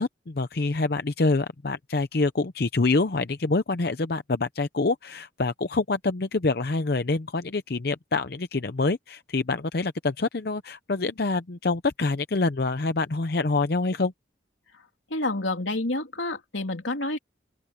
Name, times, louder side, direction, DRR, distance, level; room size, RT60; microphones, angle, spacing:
voice 1, 0.0-14.1, left 3 dB, 55° left, 0.7 m, -26 dB
voice 2, 15.1-17.2, left 2 dB, 80° left, 3.2 m, -28 dB
open air
head